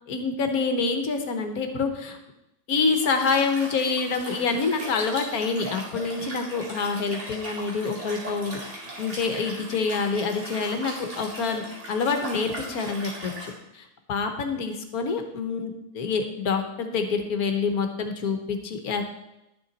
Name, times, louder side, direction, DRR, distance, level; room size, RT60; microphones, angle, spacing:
voice 1, 0.1-2.2 2.7-11.6 11.9-19.0, left 4 dB, 70° left, 6 dB, 1.4 m, -27 dB
Liquid, 2.9-13.5, right 1 dB, 45° right, 2.7 m, -39 dB
11.5 x 6.9 x 4.0 m, 0.90 s
omnidirectional pair, 1.7 m